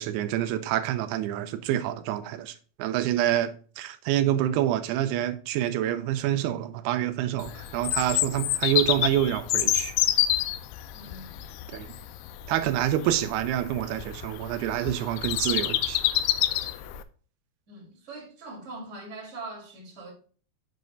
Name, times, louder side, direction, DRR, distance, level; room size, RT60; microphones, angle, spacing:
voice 1, 0.0-2.5 2.8-9.9 11.7-11.9 12.5-16.0, right 12 dB, 90° right, 2.7 m, -27 dB
Bird vocalization bird call bird song, 7.4-17.0, left 13 dB, 85° left, 2.5 m, -28 dB
voice 2, 10.9-11.4 17.7-20.1, right 2 dB, 25° right, 1.9 m, -42 dB
6.8 x 4.9 x 3.9 m
omnidirectional pair, 4.5 m